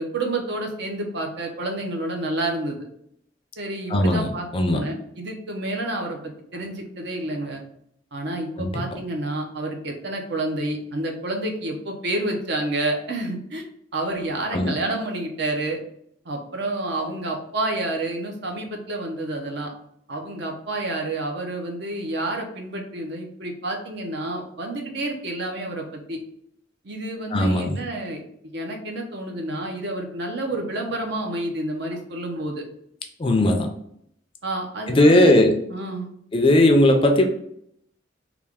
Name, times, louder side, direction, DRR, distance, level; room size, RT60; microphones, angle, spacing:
voice 1, 0.0-2.8 3.6-6.2 6.5-7.6 8.1-13.7 13.9-15.8 16.2-19.7 20.1-26.2 26.8-28.2 28.5-32.6 34.4-36.1, right 2 dB, 65° right, 2 dB, 0.7 m, -29 dB
voice 2, 3.9-4.8 8.6-8.8 14.5-14.7 27.3-27.8 33.2-33.7 34.9-35.6 36.3-37.2, left 1 dB, 30° left, 4 dB, 0.4 m, -18 dB
3.3 x 2.4 x 3.4 m, 0.70 s
head